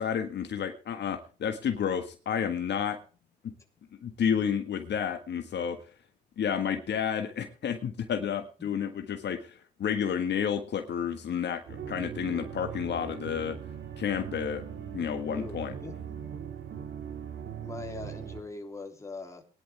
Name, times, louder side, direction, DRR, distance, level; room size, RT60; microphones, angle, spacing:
voice 1, 0.0-3.0 3.4-3.5 4.0-5.8 6.4-13.6 14.0-14.6 14.9-15.7, left 8 dB, 60° left, 6 dB, 1.6 m, -31 dB
sound 1, 11.7-18.4, right 8 dB, 70° right, 2.3 m, -40 dB
voice 2, 15.3-16.2 17.6-19.4, left 3 dB, 15° left, 2 dB, 3.4 m, -41 dB
19.0 x 11.0 x 3.5 m, 0.37 s
cardioid pair, 90°, 20 cm